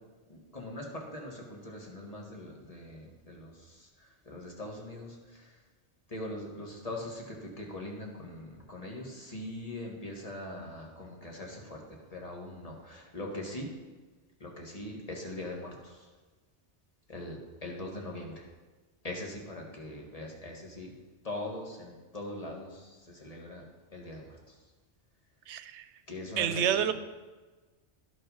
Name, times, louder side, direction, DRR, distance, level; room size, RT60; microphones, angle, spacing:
voice 1, 0.3-5.5 6.1-11.8 12.1-13.7 14.4-16.1 17.1-18.4 19.0-20.9 21.2-23.6 23.9-24.5 26.1-26.9, left 1 dB, 35° left, 0 dB, 1.6 m, -41 dB
voice 2, 25.5-25.9 26.4-26.9, right 9 dB, 85° right, 11 dB, 0.9 m, -28 dB
11.5 x 5.5 x 5.5 m, 1.3 s
omnidirectional pair, 1.2 m